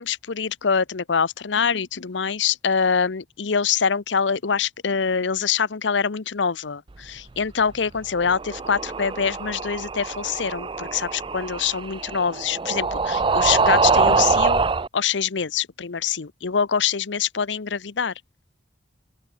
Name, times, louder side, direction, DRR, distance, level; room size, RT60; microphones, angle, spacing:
voice 1, 0.0-14.6 14.9-18.1, left 6 dB, 80° left, 0.8 m, -24 dB
sound 1, 8.2-14.9, right 4 dB, 25° right, 0.5 m, -23 dB
open air
head